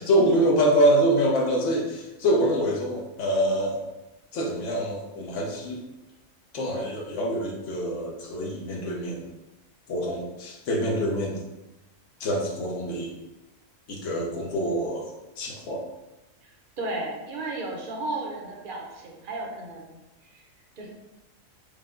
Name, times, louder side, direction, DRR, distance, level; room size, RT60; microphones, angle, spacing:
voice 1, 0.0-3.8 4.3-5.8 6.5-9.3 9.9-11.4 12.2-13.1 13.9-15.1 15.4-15.8, right 1 dB, 65° left, -1 dB, 1.1 m, -25 dB
voice 2, 16.8-20.0 20.3-20.4 20.8-20.9, right 2 dB, 45° right, -1 dB, 0.9 m, -34 dB
5.1 x 2.2 x 3.7 m, 1.0 s
omnidirectional pair, 1.4 m